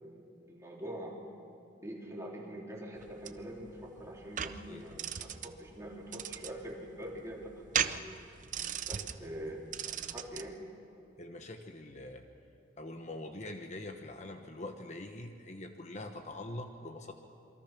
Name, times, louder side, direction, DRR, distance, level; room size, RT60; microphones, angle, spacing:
voice 1, 0.0-1.2 1.8-7.5 7.8-8.0 8.9-10.6, equal, 15° right, -3 dB, 3.6 m, -44 dB
sound 1, 3.0-10.5, right 8 dB, 45° right, 0.7 m, -38 dB
voice 2, 4.7-5.2 9.0-9.6 11.2-12.2 12.8-17.1, left 1 dB, 40° left, 5 dB, 1.2 m, -44 dB
27.5 x 23.5 x 6.1 m, 2.6 s
head